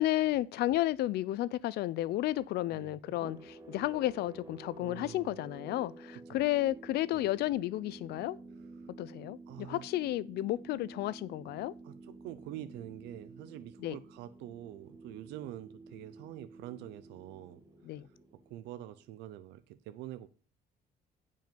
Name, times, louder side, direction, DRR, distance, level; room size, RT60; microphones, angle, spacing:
voice 1, 0.0-8.4 9.0-11.7 13.8-14.0 17.9-18.1, left 15 dB, 75° left, 0.5 m, -32 dB
voice 2, 2.7-3.2 4.8-5.4 6.1-6.5 7.1-7.3 8.8-8.9 9.5-9.8 11.8-18.0 18.5-20.3, right 13 dB, 85° right, 0.6 m, -46 dB
sound 1, 3.0-19.3, right 3 dB, 20° right, 1.8 m, -51 dB
9.1 x 5.4 x 5.2 m
cardioid pair, 110°, 17 cm